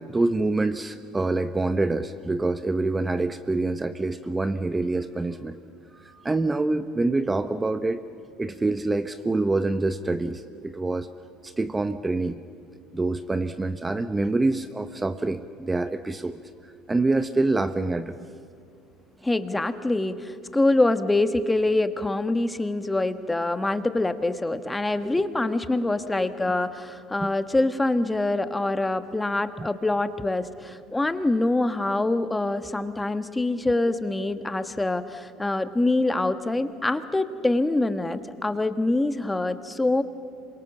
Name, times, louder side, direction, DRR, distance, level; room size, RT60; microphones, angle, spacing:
voice 1, 0.1-5.6 5.9-8.0 8.4-11.1 11.4-12.4 12.9-16.4 16.9-18.3 27.2-27.3 29.6-29.7, right 2 dB, 20° right, 11 dB, 1.0 m, -26 dB
voice 2, 19.2-40.0, left 2 dB, 15° left, 10 dB, 1.4 m, -25 dB
27.0 x 24.0 x 7.4 m, 2.4 s
hypercardioid pair, 70°, 0 cm